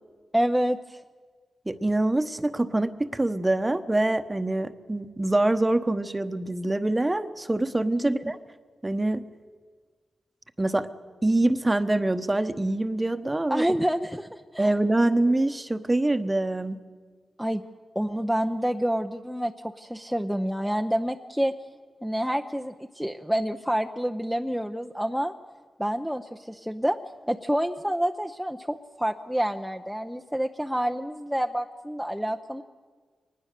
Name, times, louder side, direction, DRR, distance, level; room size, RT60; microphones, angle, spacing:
voice 1, 0.3-1.0 7.9-8.2 13.5-14.7 17.4-17.6 17.9-21.5 22.0-25.3 25.8-27.0 27.3-32.6, equal, ahead, 3 dB, 0.7 m, -28 dB
voice 2, 1.7-8.4 8.8-9.2 10.6-10.9 11.2-13.6 14.6-16.8, right 2 dB, 20° right, 9 dB, 1.1 m, -25 dB
23.0 x 19.5 x 6.7 m, 1.5 s
cardioid pair, 70°, 0 cm